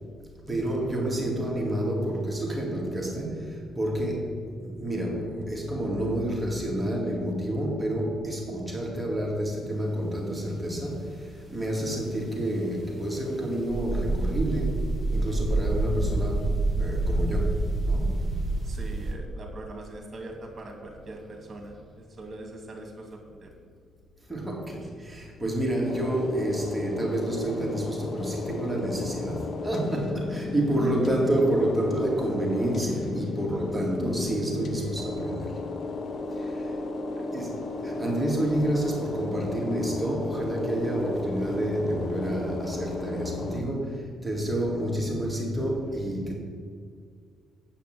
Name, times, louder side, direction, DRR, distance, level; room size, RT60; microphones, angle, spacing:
voice 1, 0.5-18.3 24.3-35.6 36.3-36.8 37.3-46.4, right 1 dB, 10° right, -2 dB, 2.4 m, -29 dB
sound 1, 13.7-19.1, right 2 dB, 10° left, 2.6 m, -27 dB
voice 2, 18.6-23.5 37.1-37.2, right 2 dB, 40° right, 2 dB, 2.4 m, -42 dB
sound 2, 25.8-43.6, left 3 dB, 50° left, 1.0 m, -34 dB
8.6 x 5.8 x 7.7 m, 2.1 s
cardioid pair, 90°, 0 cm